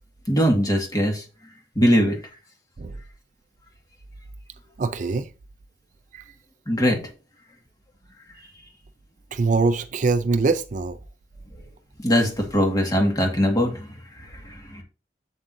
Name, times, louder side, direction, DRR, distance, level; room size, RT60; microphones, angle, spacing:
voice 1, 0.3-1.2 1.8-2.2 6.7-7.0 12.0-14.8, equal, 20° left, 1.9 m, -21 dB
voice 2, 4.8-5.3 6.1-6.3 9.3-11.0, right 3 dB, 45° right, 0.4 m, -23 dB
7.7 x 7.3 x 2.7 m
head